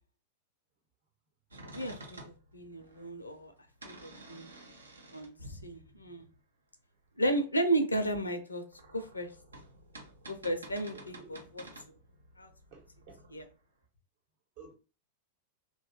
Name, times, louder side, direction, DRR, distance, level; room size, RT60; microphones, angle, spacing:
sound 1, 1.5-6.4 8.4-13.5, right 1 dB, 80° right, 0.5 m, -51 dB
voice 1, 1.7-3.5 3.8-4.5 5.1-6.3 7.2-8.6 8.9-9.3 10.3-11.6 12.4-12.5 13.3-13.4, right 1 dB, 85° left, 0.4 m, -33 dB
voice 2, 10.9-11.3 12.7-13.2 14.6-14.7, right 5 dB, 55° right, 0.9 m, -52 dB
2.6 x 2.2 x 2.8 m
figure-of-eight pair, 90°, 0 cm